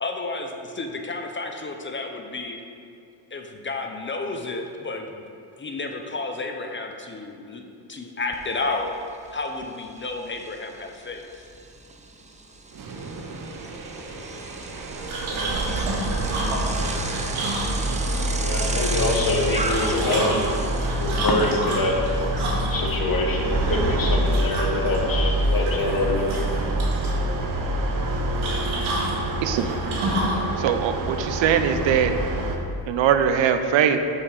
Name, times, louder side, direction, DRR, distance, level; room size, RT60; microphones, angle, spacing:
voice 1, 0.0-2.6 3.3-5.2 5.6-7.6 7.9-8.9 9.3-11.4, left 3 dB, 25° left, 4 dB, 0.6 m, -31 dB
Bicycle, 8.3-8.4 8.8-22.6, right 2 dB, 15° right, 0.6 m, -35 dB
sound 1, 12.7-32.6, right 1 dB, 45° right, 0.9 m, -27 dB
sound 2, 15.1-18.2 19.5-22.9 24.3-25.0 25.3-26.0 26.3-27.2 28.4-30.4, right 1 dB, 85° right, 2.0 m, -30 dB
voice 2, 18.4-20.6 21.0-22.0 22.7-26.4, left 2 dB, 45° left, 1 dB, 1.3 m, -25 dB
voice 3, 30.6-32.1 32.9-34.0, right 8 dB, 70° right, 8 dB, 0.7 m, -21 dB
5.5 x 5.3 x 6.4 m, 2.4 s
cardioid pair, 95°, 47 cm